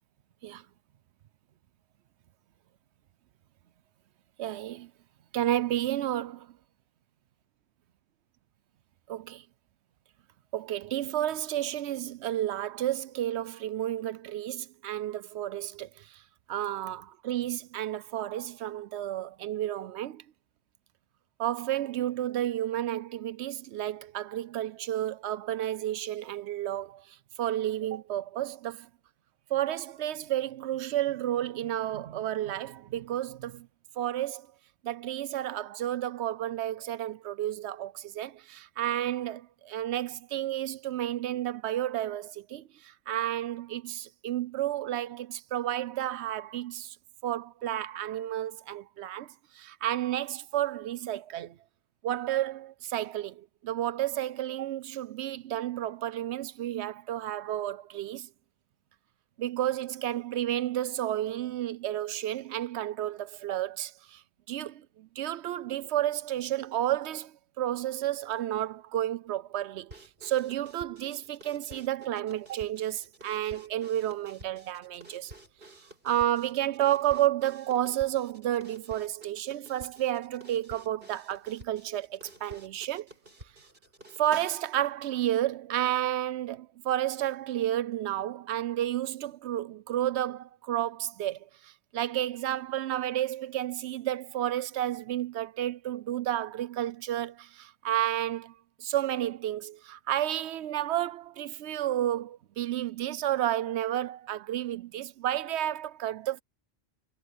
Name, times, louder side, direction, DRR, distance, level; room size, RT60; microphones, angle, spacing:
voice 1, 4.4-4.9 5.3-6.5 9.1-9.4 10.5-16.2 16.5-20.2 21.4-28.9 29.5-33.7 34.0-34.5 34.8-47.0 47.2-51.6 52.0-58.3 59.4-64.2 64.5-75.3 76.0-83.1 84.2-98.5 98.8-106.4, right 12 dB, 90° right, 0.9 m, -31 dB
sound 1, 69.9-84.4, right 1 dB, 60° right, 6.1 m, -52 dB
omnidirectional pair, 1.1 m